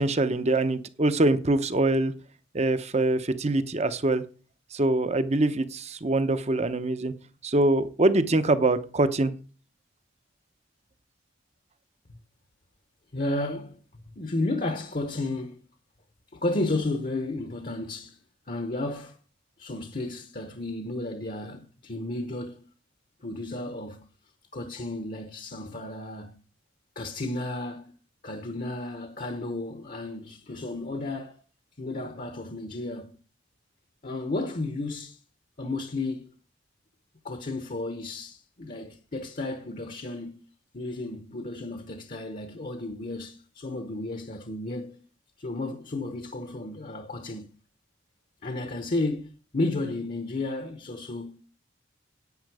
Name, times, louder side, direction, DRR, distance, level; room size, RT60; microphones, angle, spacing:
voice 1, 0.0-2.1 2.5-4.2 4.7-7.1 7.4-9.3, right 2 dB, 35° right, 0.8 m, -24 dB
voice 2, 13.1-13.8 14.2-15.6 16.3-18.2 18.5-19.2 19.6-22.7 23.2-24.1 24.5-26.4 27.0-27.9 28.2-31.4 31.8-33.2 34.0-35.2 35.6-36.3 37.2-40.4 40.7-45.0 45.4-47.5 48.4-51.4, left 2 dB, 45° left, 1.0 m, -33 dB
10.5 x 8.7 x 4.8 m
head